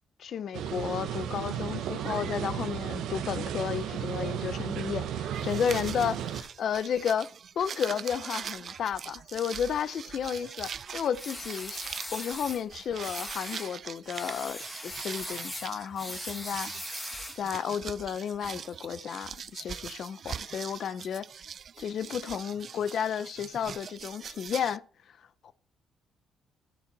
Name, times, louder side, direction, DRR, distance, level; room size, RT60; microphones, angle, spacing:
voice 1, 0.2-7.3 7.6-16.7 17.4-21.3 21.8-24.8 25.4-25.5, left 8 dB, 65° left, 0.6 m, -32 dB
sound 1, 0.5-6.4, right 9 dB, 90° right, 0.9 m, -34 dB
sound 2, 5.3-24.8, right 7 dB, 50° right, 0.3 m, -42 dB
sound 3, 11.2-12.6 13.0-13.7 14.1-17.5, left 1 dB, 15° left, 1.6 m, -40 dB
13.0 x 4.4 x 4.1 m
cardioid pair, 90°, 0 cm